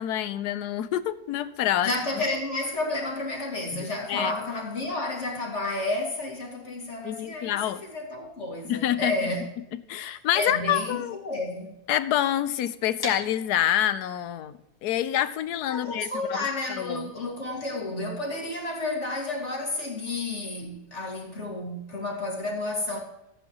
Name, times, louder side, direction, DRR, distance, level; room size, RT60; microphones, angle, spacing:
voice 1, 0.0-1.9 3.7-4.3 7.0-7.8 8.6-9.1 9.9-11.2 11.9-16.4 16.7-17.1, left 11 dB, 90° left, 1.2 m, -27 dB
voice 2, 1.8-9.5 10.3-11.7 15.7-23.0, left 2 dB, 45° left, 2.6 m, -31 dB
sound 1, 13.0-18.8, left 1 dB, 15° left, 2.2 m, -43 dB
14.5 x 8.8 x 3.0 m
omnidirectional pair, 1.7 m